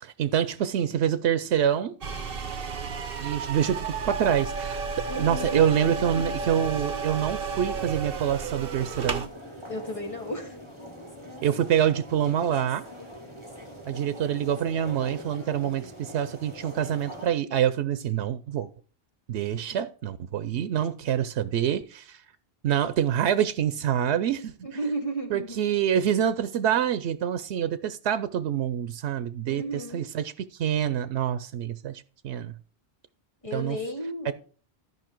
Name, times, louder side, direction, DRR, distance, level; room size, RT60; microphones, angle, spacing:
voice 1, 0.0-1.9 3.2-4.8 5.2-9.2 11.4-12.8 13.9-18.7 19.3-22.2 22.6-24.5 25.3-32.5 33.5-33.8, right 9 dB, 90° right, 0.9 m, -26 dB
sound 1, 2.0-9.3, right 5 dB, 60° right, 1.1 m, -32 dB
voice 2, 5.1-5.6 6.1-6.2 9.7-10.6 19.5-19.6 24.6-25.6 29.5-30.0 33.4-34.3, right 1 dB, 30° left, 2.1 m, -33 dB
sound 2, 5.1-17.3, equal, 25° right, 2.2 m, -43 dB
12.5 x 5.3 x 4.4 m
omnidirectional pair, 1.1 m